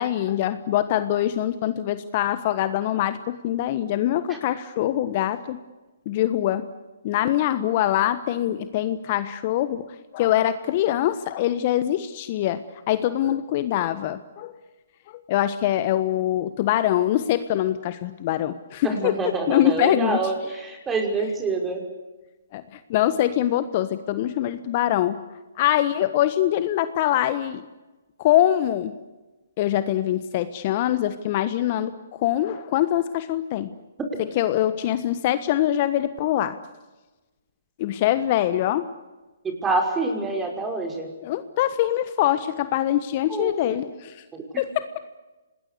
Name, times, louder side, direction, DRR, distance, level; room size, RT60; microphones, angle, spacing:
voice 1, 0.0-5.6 6.0-6.6 7.0-9.9 10.1-12.6 12.9-14.5 15.1-20.2 22.5-25.2 25.6-27.6 28.2-28.9 29.6-33.7 34.2-36.6 37.8-38.9 41.2-44.2 44.6-44.7, left 12 dB, 40° left, 12 dB, 1.3 m, -23 dB
voice 2, 18.8-21.8 39.6-41.1 43.3-43.8 44.3-44.4, right 3 dB, 15° right, 4 dB, 5.4 m, -26 dB
27.0 x 20.0 x 8.4 m, 1.1 s
hypercardioid pair, 135°, 0 cm